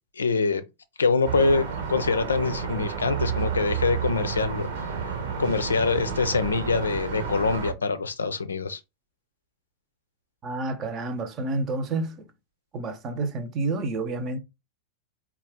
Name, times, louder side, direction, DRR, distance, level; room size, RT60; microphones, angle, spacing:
voice 1, 0.2-0.6 1.0-4.7 5.1-5.2 5.4-8.8, left 4 dB, 75° left, 0.5 m, -24 dB
sound 1, 1.2-7.7, right 6 dB, 55° right, 1.0 m, -31 dB
voice 2, 10.4-12.3 12.7-14.4, right 2 dB, 30° right, 0.8 m, -29 dB
4.5 x 2.4 x 3.5 m
figure-of-eight pair, 90°, 0 cm